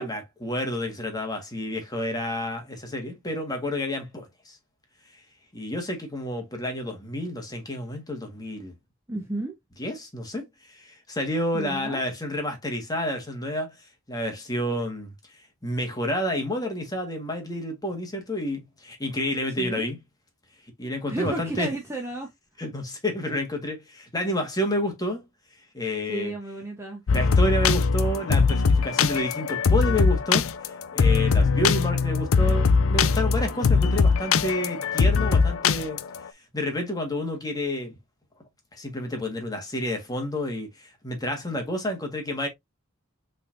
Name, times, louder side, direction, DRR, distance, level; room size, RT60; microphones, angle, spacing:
voice 1, 0.0-4.6 5.5-8.8 9.8-20.0 20.8-21.7 22.6-25.2 25.7-26.3 27.1-36.0 36.3-38.0 38.7-42.5, left 1 dB, 20° left, 1.5 m, -30 dB
voice 2, 9.1-9.5 11.5-12.0 19.6-19.9 21.1-22.3 26.1-27.0, right 2 dB, 10° right, 0.9 m, -32 dB
sound 1, 27.1-36.2, left 5 dB, 75° left, 0.5 m, -21 dB
5.8 x 3.5 x 2.6 m
head